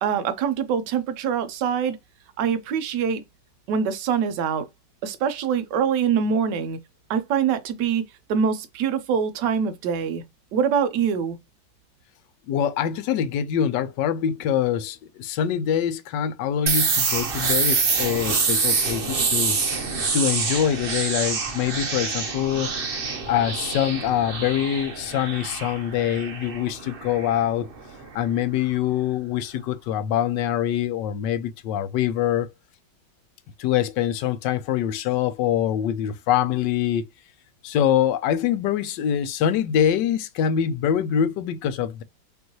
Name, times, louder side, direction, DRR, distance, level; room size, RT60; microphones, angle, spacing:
voice 1, 0.0-2.0 2.4-3.2 3.7-4.6 5.0-6.8 7.1-8.0 8.3-10.2 10.5-11.4, right 7 dB, 70° right, 1.3 m, -24 dB
voice 2, 12.5-19.6 20.1-22.7 23.3-27.7 28.1-32.5 33.6-37.1 37.6-42.0, left 9 dB, 75° left, 1.1 m, -24 dB
sound 1, 16.7-28.3, right 4 dB, 50° right, 0.7 m, -26 dB
5.2 x 2.6 x 3.0 m
omnidirectional pair, 2.1 m